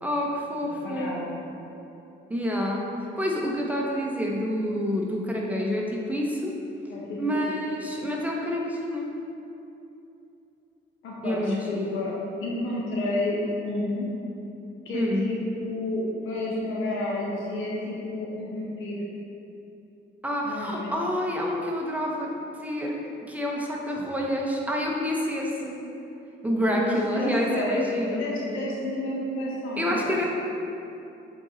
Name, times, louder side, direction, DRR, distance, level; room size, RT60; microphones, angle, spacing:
voice 1, 0.0-1.1 2.3-2.9 3.2-6.5 7.2-9.1 11.2-12.0 14.9-15.3 20.2-23.0 23.3-25.8 26.4-28.2 29.8-30.3, equal, 5° right, -2 dB, 1.0 m, -28 dB
voice 2, 0.6-1.3 6.9-7.4 11.0-14.1 14.8-19.0 20.4-21.0 26.7-30.3, left 1 dB, 85° left, -4 dB, 1.5 m, -31 dB
7.9 x 4.1 x 4.1 m, 2.8 s
cardioid pair, 90°, 20 cm